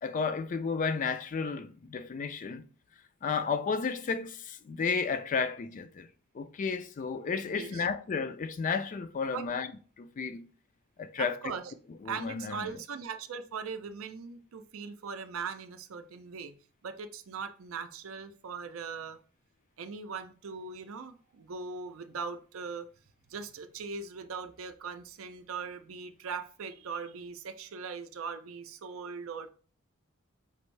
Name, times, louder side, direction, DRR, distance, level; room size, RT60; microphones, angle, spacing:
voice 1, 0.0-2.7 3.2-6.1 6.3-9.7 10.0-10.5 11.0-11.4 12.0-12.7, left 5 dB, 40° left, 0.3 m, -32 dB
voice 2, 7.4-7.9 9.3-9.5 11.2-11.7 12.0-16.5 16.8-19.2 19.8-22.9 23.3-29.5, right 5 dB, 75° right, 0.5 m, -40 dB
5.3 x 2.6 x 3.1 m
head